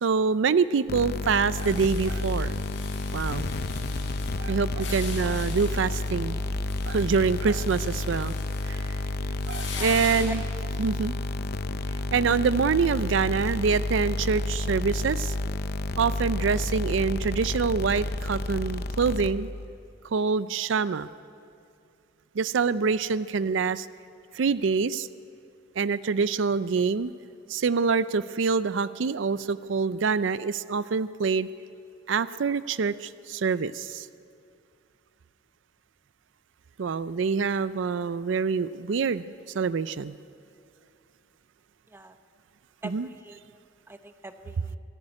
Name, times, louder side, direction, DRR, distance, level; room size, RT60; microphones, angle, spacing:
voice 1, 0.0-2.6 3.1-3.5 4.4-6.4 6.9-8.4 8.7-8.8 9.5-10.4 10.8-11.1 12.1-15.3 16.0-19.5 20.1-21.1 22.4-23.9 24.3-25.1 25.8-27.1 27.5-31.5 32.1-34.1 36.8-39.2 39.5-40.1 42.8-43.1, right 5 dB, 75° right, 15 dB, 0.4 m, -25 dB
sound 1, 0.9-19.7, left 2 dB, 55° left, 0.6 m, -30 dB
sound 2, 1.5-10.2, left 5 dB, 75° left, 5.4 m, -42 dB
voice 2, 9.7-10.3 41.9-42.1 42.8-43.4 43.9-44.8, right 2 dB, 15° right, 8 dB, 0.9 m, -42 dB
25.0 x 10.5 x 9.8 m, 2.4 s
head